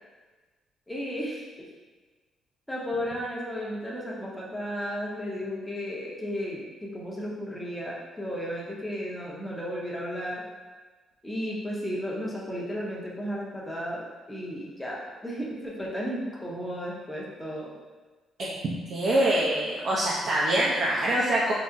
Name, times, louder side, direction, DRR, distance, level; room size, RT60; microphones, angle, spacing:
voice 1, 0.9-1.5 2.7-10.4 11.2-17.7, equal, 5° left, -5 dB, 0.7 m, -34 dB
voice 2, 18.9-21.5, right 1 dB, 60° right, -6 dB, 0.5 m, -24 dB
3.7 x 2.0 x 2.5 m, 1.3 s
cardioid pair, 90°, 0 cm